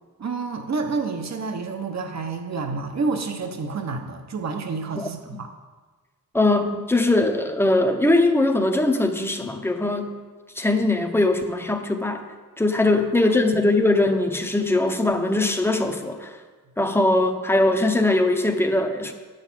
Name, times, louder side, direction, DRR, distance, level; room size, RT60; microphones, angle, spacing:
voice 1, 0.2-5.5 12.9-13.0, right 4 dB, 50° right, 5 dB, 1.0 m, -29 dB
voice 2, 6.3-10.2 10.6-12.3 12.6-16.4 16.8-19.1, left 2 dB, 5° left, 5 dB, 0.8 m, -21 dB
10.0 x 6.5 x 7.4 m, 1.4 s
wide cardioid pair, 160°, 35 cm